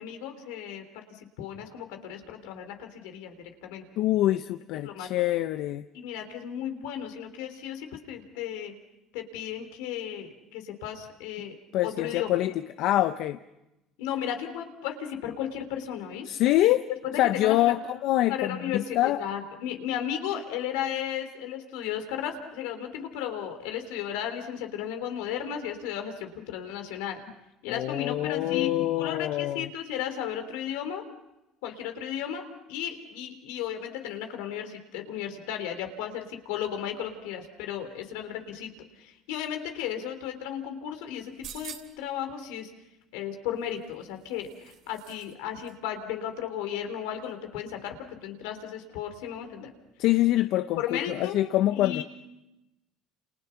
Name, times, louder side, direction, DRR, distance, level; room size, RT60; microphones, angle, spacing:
voice 1, 0.0-3.8 4.8-5.1 5.9-8.8 9.1-11.6 11.8-12.4 14.0-16.3 17.0-17.8 18.3-27.2 27.6-28.7 29.0-31.0 31.6-32.4 32.7-38.7 39.0-42.7 43.1-49.7 50.8-51.4 51.8-52.0, left 9 dB, 85° left, 6 dB, 3.5 m, -35 dB
voice 2, 4.0-5.8 11.7-13.4 16.3-16.8 17.2-19.2 27.7-29.7 50.0-52.0, left 14 dB, 70° left, 11 dB, 0.8 m, -25 dB
sound 1, 41.2-42.1 43.6-45.3 45.6-45.7, right 9 dB, 60° right, 2.8 m, -46 dB
29.0 x 29.0 x 5.9 m, 0.94 s
supercardioid pair, 105°, 0 cm